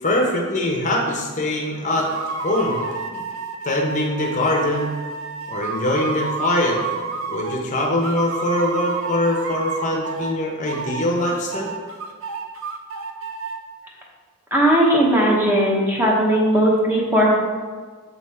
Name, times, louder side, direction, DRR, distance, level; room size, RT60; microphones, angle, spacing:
voice 1, 0.0-2.1 2.4-3.2 3.6-4.9 5.5-6.8 7.3-11.7, left 1 dB, 35° left, 0 dB, 0.7 m, -23 dB
sound 1, 1.9-7.6 8.0-10.4 10.7-13.6, right 4 dB, 65° right, 0.5 m, -30 dB
voice 2, 14.5-17.3, equal, 10° right, -3 dB, 0.9 m, -17 dB
7.1 x 3.6 x 4.2 m, 1.5 s
head